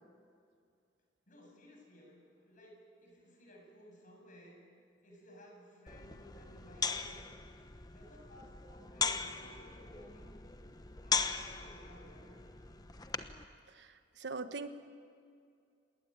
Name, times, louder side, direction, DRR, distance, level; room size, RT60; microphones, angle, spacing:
voice 1, 1.3-4.6 5.0-7.3 7.8-10.3 11.0-12.8, equal, 45° left, 1 dB, 7.5 m, -58 dB
sound 1, 5.9-13.5, left 5 dB, 20° left, 1.0 m, -39 dB
voice 2, 13.7-14.7, right 4 dB, 70° right, 9 dB, 1.3 m, -42 dB
27.5 x 20.5 x 9.0 m, 2.3 s
head